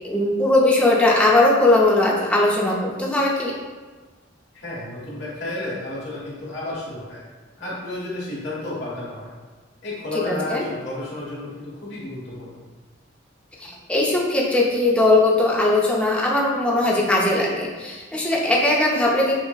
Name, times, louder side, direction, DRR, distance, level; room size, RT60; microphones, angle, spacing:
voice 1, 0.0-3.5 10.3-10.6 13.6-19.3, left 2 dB, 5° left, -4 dB, 0.5 m, -19 dB
voice 2, 4.5-7.2 7.6-9.3 9.8-12.6, left 2 dB, 60° left, -7 dB, 1.3 m, -32 dB
5.9 x 2.0 x 2.3 m, 1.3 s
head